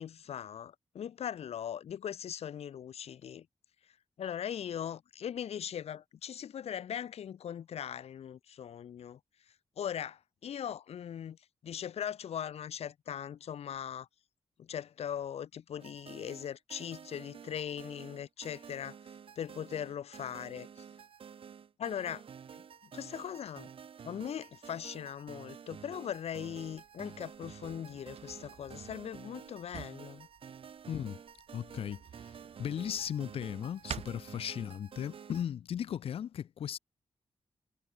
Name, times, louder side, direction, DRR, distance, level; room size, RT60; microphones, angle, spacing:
voice 1, 0.0-3.5 4.2-9.2 9.8-11.4 11.6-14.1 14.6-19.0 19.4-20.8 21.8-22.2 22.5-22.6 22.9-23.7 24.0-30.3, left 9 dB, 85° left, 1.3 m, -40 dB
sound 1, 15.8-35.5, right 7 dB, 60° right, 4.5 m, -50 dB
Drawer open or close, 26.7-35.0, right 8 dB, 85° right, 2.7 m, -51 dB
voice 2, 30.9-31.2 31.5-36.8, left 9 dB, 65° left, 0.5 m, -37 dB
wide cardioid pair, 165°, 10 cm